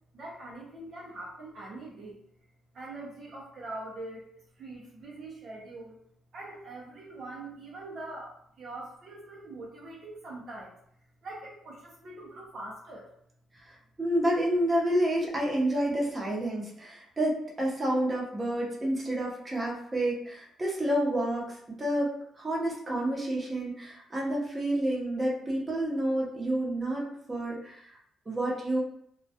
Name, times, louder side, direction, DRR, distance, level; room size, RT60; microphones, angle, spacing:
voice 1, 0.1-2.2 2.7-4.2 4.6-6.0 6.3-10.7 11.2-13.1, right 2 dB, 55° right, -3 dB, 0.5 m, -43 dB
voice 2, 14.0-22.1 22.4-27.0 27.3-27.8 28.3-28.8, right 1 dB, 25° right, -3 dB, 0.8 m, -29 dB
2.2 x 2.1 x 2.7 m, 0.69 s
cardioid pair, 90°, 0 cm